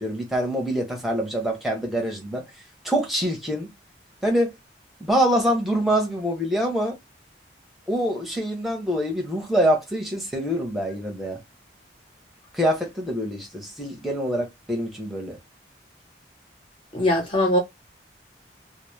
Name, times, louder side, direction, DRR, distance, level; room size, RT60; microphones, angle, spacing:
voice 1, 0.0-2.4 2.8-3.7 4.2-4.5 5.0-7.0 7.9-11.4 12.5-15.4, equal, ahead, 0.7 m, -25 dB
voice 2, 16.9-17.6, left 1 dB, 30° left, 0.8 m, -21 dB
2.1 x 2.0 x 3.0 m
head